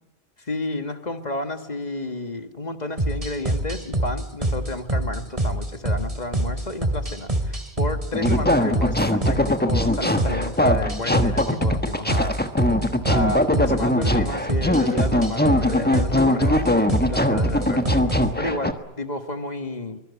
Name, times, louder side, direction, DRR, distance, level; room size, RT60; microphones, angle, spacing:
voice 1, 0.4-12.4 13.1-20.0, left 2 dB, 40° left, 7 dB, 1.9 m, -31 dB
sound 1, 3.0-18.3, right 1 dB, 30° right, 2.8 m, -26 dB
sound 2, 8.1-18.7, left 1 dB, 10° left, 1.3 m, -22 dB
25.0 x 21.0 x 8.4 m, 1.0 s
omnidirectional pair, 1.2 m